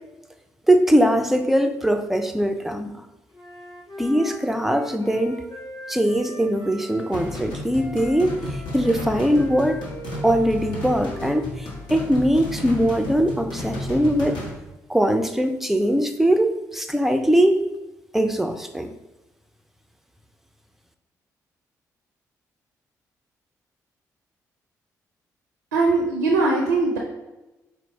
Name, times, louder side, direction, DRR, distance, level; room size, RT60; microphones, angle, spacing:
voice 1, 0.7-3.0 4.0-5.4 5.9-9.8 10.2-14.4 14.9-17.6 18.1-18.9, right 1 dB, 5° right, 6 dB, 0.4 m, -21 dB
Wind instrument woodwind instrument, 3.3-7.4 7.7-12.0, right 1 dB, 45° left, 1.4 m, -39 dB
sound 1, 7.1-14.5, left 2 dB, 60° left, 1.0 m, -33 dB
voice 2, 25.7-27.0, right 3 dB, 85° right, 0 dB, 0.4 m, -20 dB
4.3 x 2.1 x 3.8 m, 1.0 s
figure-of-eight pair, 40°, 9 cm